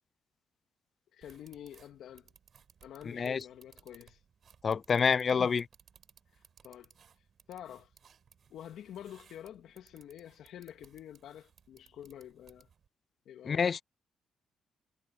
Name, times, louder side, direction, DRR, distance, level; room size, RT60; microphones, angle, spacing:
voice 1, 1.1-2.3 2.8-4.2 5.1-5.6 6.6-6.9 7.5-7.9 8.5-12.7 13.3-13.7, left 10 dB, 75° left, 2.4 m, -48 dB
sound 1, 1.2-12.9, right 7 dB, 50° right, 6.6 m, -63 dB
voice 2, 4.6-5.6 13.5-13.8, left 6 dB, 45° left, 0.4 m, -27 dB
cardioid pair, 90°, 0 cm